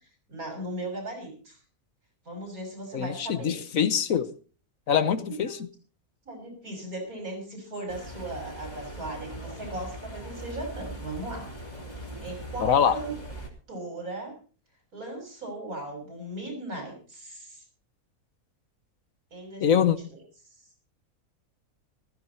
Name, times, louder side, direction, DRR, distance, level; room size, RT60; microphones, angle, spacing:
voice 1, 0.3-1.6 2.3-3.6 5.2-5.6 6.2-11.5 12.2-13.1 13.7-14.3 14.9-17.6 19.3-19.9, right 1 dB, 70° right, 3 dB, 6.6 m, -37 dB
voice 2, 2.9-4.3 4.9-5.7 12.6-13.0 19.6-20.0, left 8 dB, 65° left, 13 dB, 1.3 m, -24 dB
sound 1, 7.9-13.5, right 1 dB, 25° left, 3.2 m, -40 dB
15.0 x 15.0 x 4.2 m, 0.39 s
omnidirectional pair, 1.6 m